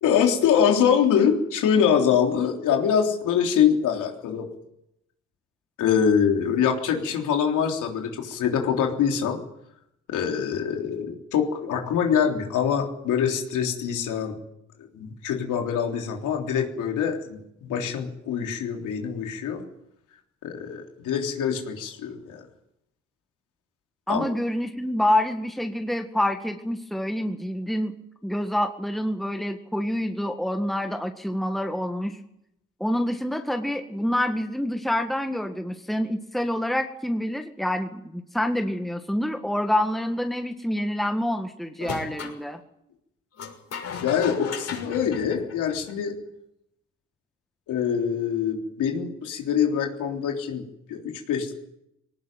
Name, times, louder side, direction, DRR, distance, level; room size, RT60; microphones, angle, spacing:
voice 1, 0.0-4.5 5.8-9.4 10.1-14.4 14.9-19.6 20.4-22.5 24.1-24.3 44.0-46.2 47.7-51.5, left 7 dB, 85° left, 2 dB, 3.6 m, -24 dB
voice 2, 24.1-27.9 28.2-32.2 32.8-42.6, left 1 dB, ahead, 5 dB, 1.8 m, -27 dB
sound 1, 41.8-42.4 43.4-46.1, left 6 dB, 55° left, 6.2 m, -36 dB
20.5 x 18.5 x 9.2 m, 0.80 s
cardioid pair, 90°, 30 cm